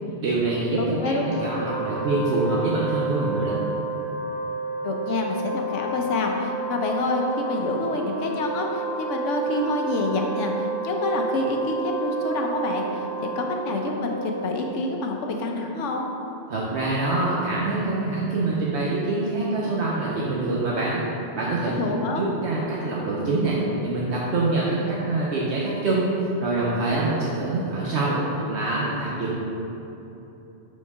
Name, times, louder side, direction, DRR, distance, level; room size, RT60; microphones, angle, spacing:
voice 1, 0.2-3.6 16.5-21.0 21.3-26.1 26.4-29.4, right 2 dB, 70° right, -6 dB, 1.0 m, -25 dB
voice 2, 0.8-1.2 4.8-13.1 13.4-16.0 21.6-22.2, left 2 dB, 90° left, 2 dB, 1.1 m, -27 dB
Wind instrument woodwind instrument, 1.2-14.6, right 4 dB, 50° left, 1.8 m, -30 dB
4.7 x 4.5 x 5.5 m, 3.0 s
omnidirectional pair, 1.2 m